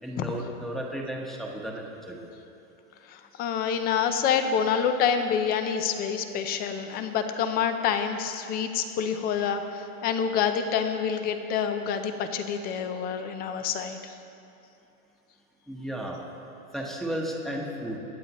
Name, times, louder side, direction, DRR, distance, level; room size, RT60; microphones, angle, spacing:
voice 1, 0.0-2.3 15.7-16.2 16.7-18.0, equal, ahead, -2 dB, 1.1 m, -34 dB
voice 2, 3.1-14.1, left 7 dB, 20° left, 8 dB, 0.5 m, -27 dB
22.0 x 8.8 x 3.0 m, 2.7 s
supercardioid pair, 145°, 45 cm